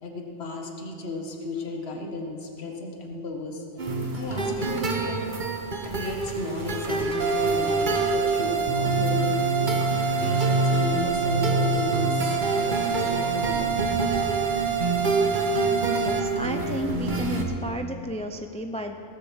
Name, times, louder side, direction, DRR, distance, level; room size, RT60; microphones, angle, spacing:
voice 1, 0.0-3.6 4.1-5.3 5.8-9.4 10.2-13.7, left 3 dB, 55° left, 2 dB, 1.7 m, -34 dB
sound 1, 3.8-17.4, right 2 dB, 40° right, 1.3 m, -26 dB
sound 2, 7.2-16.2, right 9 dB, 80° right, 1.4 m, -28 dB
voice 2, 15.8-19.0, equal, 10° left, 6 dB, 0.3 m, -33 dB
18.0 x 8.2 x 7.3 m, 2.5 s
omnidirectional pair, 1.3 m